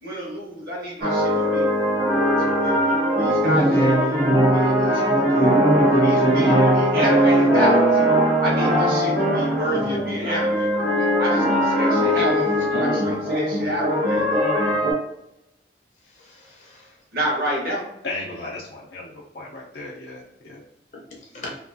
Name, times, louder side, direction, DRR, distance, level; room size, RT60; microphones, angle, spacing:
voice 1, 0.0-1.7 2.4-5.7 6.0-8.0 8.4-10.7 11.2-14.4 17.1-17.9, equal, 55° right, -4 dB, 1.2 m, -29 dB
sound 1, 1.0-14.9, equal, 75° right, 0.8 m, -20 dB
voice 2, 12.7-13.2 18.0-20.7, left 2 dB, 90° left, -6 dB, 0.5 m, -34 dB
voice 3, 16.0-16.9 20.9-21.5, left 2 dB, 40° left, -2 dB, 0.6 m, -42 dB
2.9 x 2.3 x 2.5 m, 0.80 s
head